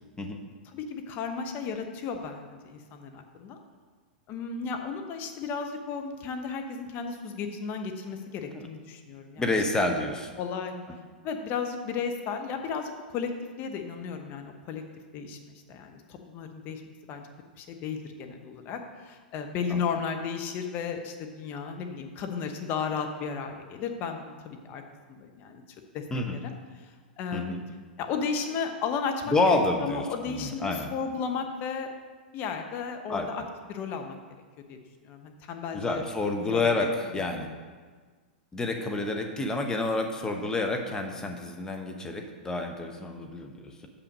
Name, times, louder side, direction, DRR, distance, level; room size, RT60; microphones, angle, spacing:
voice 1, 0.7-3.6 4.3-9.4 10.4-10.7 11.2-13.3 13.6-14.8 15.1-16.8 17.1-17.2 17.6-24.8 25.1-25.6 25.9-26.0 26.3-26.4 26.8-27.6 28.0-31.9 32.3-33.4 33.7-34.2 34.7-36.0 36.5-36.9, left 6 dB, 40° left, 5 dB, 0.9 m, -34 dB
voice 2, 9.4-10.3 19.7-19.8 26.1-26.4 27.3-27.6 29.3-30.9 33.1-33.3 35.7-36.9 37.1-37.5 38.5-43.9, left 2 dB, 15° left, 4 dB, 0.9 m, -29 dB
6.7 x 5.9 x 5.2 m, 1.5 s
hypercardioid pair, 105°, 5 cm